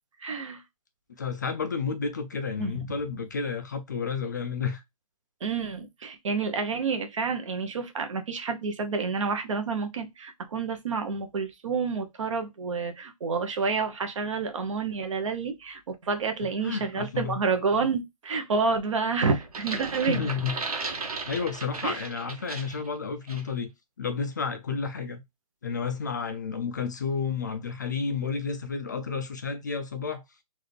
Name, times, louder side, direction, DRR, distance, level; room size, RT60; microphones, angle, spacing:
voice 1, 0.2-0.6 2.6-2.7 5.4-20.3 21.8-22.0, right 4 dB, 55° right, 1.0 m, -29 dB
voice 2, 1.2-4.8 16.6-17.4 20.1-20.6 21.3-23.7 24.0-25.2 25.6-30.2, left 5 dB, 30° left, 0.4 m, -31 dB
sound 1, 19.4-22.9 23.3-23.5, right 4 dB, 75° right, 1.4 m, -35 dB
4.0 x 2.5 x 3.2 m
hypercardioid pair, 170°, 19 cm